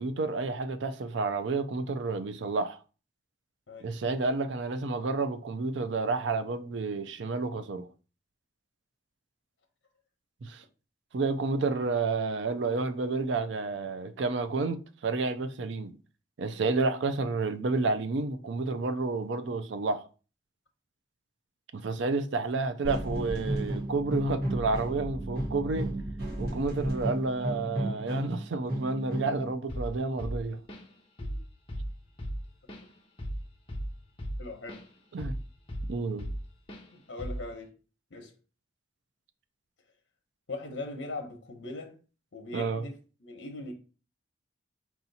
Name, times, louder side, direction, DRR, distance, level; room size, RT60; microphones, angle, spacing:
voice 1, 0.0-2.8 3.8-7.9 10.4-10.6 11.1-15.9 16.4-20.1 21.7-25.9 26.4-30.6 35.1-35.4 35.9-36.3 42.5-42.9, right 3 dB, 75° right, 0.5 m, -30 dB
sound 1, 22.8-29.5, right 1 dB, 55° right, 1.4 m, -33 dB
Drum kit / Drum, 29.7-29.9 30.2-30.9 31.2-31.4 31.7-34.9 35.2-36.4 36.7-36.9 37.2-37.5, equal, 30° left, 0.9 m, -36 dB
voice 2, 34.4-34.8 36.9-37.7 38.1-38.3 40.5-41.9 42.3-42.9 43.2-43.7, left 2 dB, 70° left, 0.8 m, -40 dB
4.7 x 2.8 x 4.0 m
head